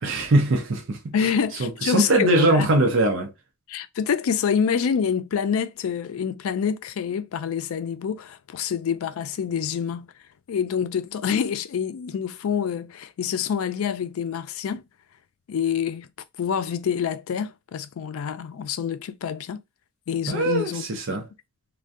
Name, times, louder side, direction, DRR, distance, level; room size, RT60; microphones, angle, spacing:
voice 1, 0.0-1.1 1.6-3.3 20.3-21.2, right 2 dB, 60° right, 0.6 m, -21 dB
voice 2, 1.1-2.7 3.7-10.1 10.5-14.8 15.5-16.1 16.4-19.6 20.1-20.8 21.1-21.3, left 7 dB, 85° left, 0.4 m, -27 dB
2.6 x 2.2 x 3.5 m
head